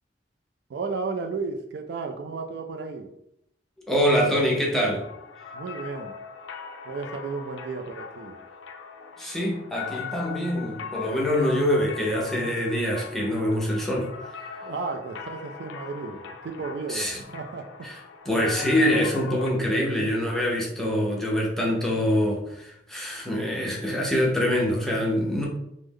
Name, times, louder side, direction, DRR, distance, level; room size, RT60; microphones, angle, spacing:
voice 1, 0.7-3.1 5.5-6.1 6.9-8.4 14.6-17.9, right 4 dB, 65° right, 5 dB, 0.3 m, -33 dB
voice 2, 3.9-5.0 9.2-14.1 16.9-17.2 18.3-25.5, equal, ahead, -3 dB, 0.6 m, -24 dB
sound 1, 4.9-19.5, left 6 dB, 80° left, 0.4 m, -40 dB
3.2 x 2.0 x 3.6 m, 0.78 s
head